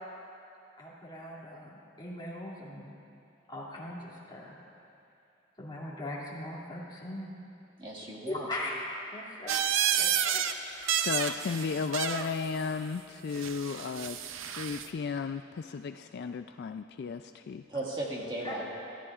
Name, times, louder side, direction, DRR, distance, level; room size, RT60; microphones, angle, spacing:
voice 1, 0.8-2.9 3.5-4.5 5.6-7.3 8.3-8.7 9.1-9.6 10.0-10.4 18.4-18.6, left 1 dB, 25° left, -5 dB, 2.5 m, -40 dB
voice 2, 7.8-8.5 9.9-10.1 17.7-18.6, right 1 dB, 25° right, -3 dB, 1.8 m, -36 dB
sound 1, 9.5-10.5 10.8-12.3 13.3-14.9, right 9 dB, 75° right, 0.6 m, -30 dB
voice 3, 11.0-14.2 14.5-17.6, left 5 dB, 55° left, 8 dB, 0.3 m, -34 dB
26.0 x 13.5 x 2.4 m, 2.6 s
head